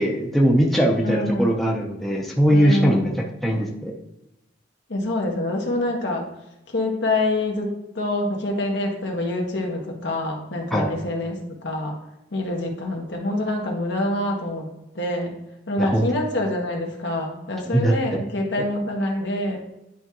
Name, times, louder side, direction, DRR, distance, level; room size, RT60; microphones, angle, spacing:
voice 1, 0.0-3.1 3.4-3.9 10.7-10.9 15.8-16.0 17.7-17.9, equal, ahead, -2 dB, 0.7 m, -20 dB
voice 2, 1.0-1.5 2.5-3.2 4.9-6.3 6.7-12.0 12.3-14.7 14.9-15.3 15.7-19.6, left 1 dB, 65° left, 0 dB, 1.4 m, -26 dB
10.0 x 3.6 x 3.0 m, 0.91 s
head